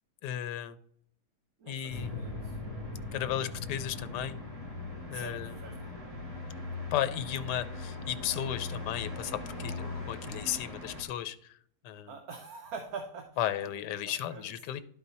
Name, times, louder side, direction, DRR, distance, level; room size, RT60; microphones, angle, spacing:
voice 1, 0.2-0.8 1.7-2.1 3.1-4.4 5.1-5.5 6.9-11.6 11.8-12.1 13.4-14.8, left 11 dB, 85° left, 13 dB, 1.2 m, -34 dB
voice 2, 1.6-2.6 5.1-5.8 12.1-14.5, right 4 dB, 65° right, 4 dB, 1.2 m, -45 dB
sound 1, 1.9-11.0, left 3 dB, 20° right, 2.0 m, -39 dB
11.5 x 3.9 x 4.1 m, 0.65 s
omnidirectional pair, 1.8 m